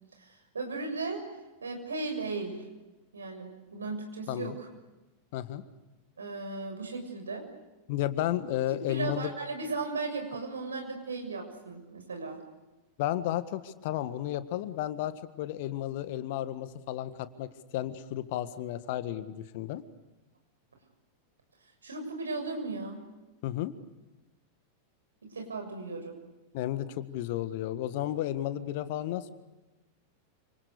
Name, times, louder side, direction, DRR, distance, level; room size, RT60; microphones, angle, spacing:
voice 1, 0.2-1.2 1.6-2.6 3.1-4.5 6.2-7.4 8.7-12.4 21.8-23.0 25.2-26.2, right 3 dB, 75° right, 4 dB, 6.9 m, -36 dB
voice 2, 5.3-5.6 7.9-9.3 13.0-19.8 23.4-23.7 26.5-29.3, left 13 dB, 50° left, 12 dB, 1.6 m, -33 dB
29.0 x 27.0 x 6.8 m, 1.1 s
figure-of-eight pair, 90°, 0 cm